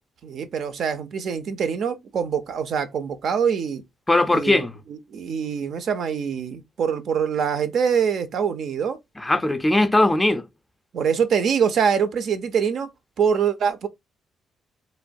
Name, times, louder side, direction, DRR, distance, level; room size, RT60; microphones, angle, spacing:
voice 1, 0.2-3.8 4.3-9.0 10.9-12.9 13.2-13.9, right 7 dB, 65° right, 0.4 m, -24 dB
voice 2, 4.1-4.8 9.2-10.5, left 2 dB, 15° left, 0.4 m, -19 dB
3.0 x 2.2 x 2.5 m
cardioid pair, 90°, 0 cm